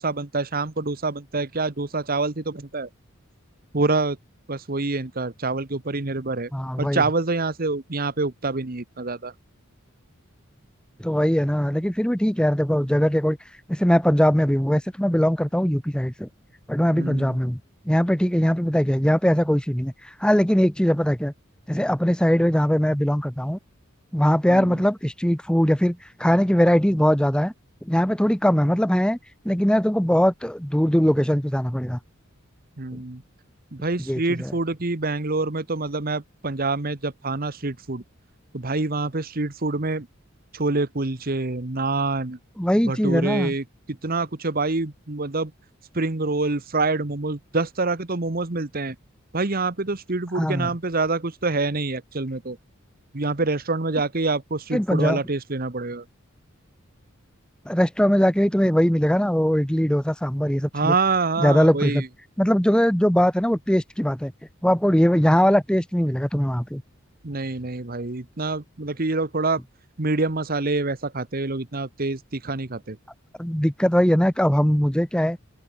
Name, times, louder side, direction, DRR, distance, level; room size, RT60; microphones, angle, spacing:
voice 1, 0.0-2.9 3.7-4.2 4.5-6.5 6.8-9.3 17.0-17.4 24.5-24.8 32.8-33.2 33.7-38.0 38.5-40.1 40.5-42.4 42.9-43.6 44.0-45.5 45.9-48.9 49.3-52.6 53.1-56.0 60.7-62.1 67.2-69.6 70.0-73.0, right 3 dB, 45° right, 1.3 m, -26 dB
voice 2, 6.5-7.0 11.0-13.4 13.7-16.3 16.7-17.6 17.9-21.3 21.7-23.6 24.1-27.5 27.8-29.2 29.4-32.0 32.9-33.0 34.1-34.5 42.6-43.5 50.3-50.7 54.7-55.2 57.6-60.9 61.4-62.0 62.4-64.3 64.6-66.8 73.4-75.4, equal, 5° left, 1.1 m, -21 dB
head